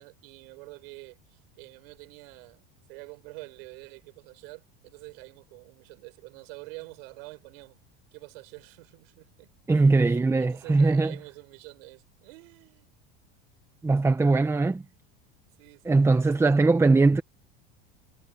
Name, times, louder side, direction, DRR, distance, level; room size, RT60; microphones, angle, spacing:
voice 1, 0.0-7.8 8.1-12.9 15.6-16.3, right 27 dB, 75° right, 4.5 m, -47 dB
voice 2, 9.7-11.1 13.8-14.8 15.8-17.2, right 3 dB, 10° right, 0.9 m, -21 dB
supercardioid pair, 120°, 29 cm